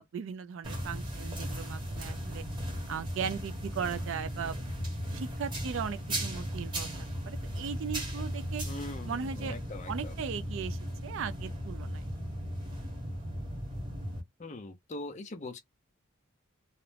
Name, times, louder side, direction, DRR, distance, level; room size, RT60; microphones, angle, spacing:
voice 1, 0.0-2.4 2.9-4.6 5.1-8.6 9.1-9.6 9.9-12.0, right 6 dB, 60° right, 0.3 m, -38 dB
sound 1, 0.6-14.2, equal, 20° right, 0.9 m, -37 dB
voice 2, 8.6-10.2 14.4-15.6, left 2 dB, 30° left, 0.5 m, -42 dB
2.4 x 2.1 x 3.2 m
head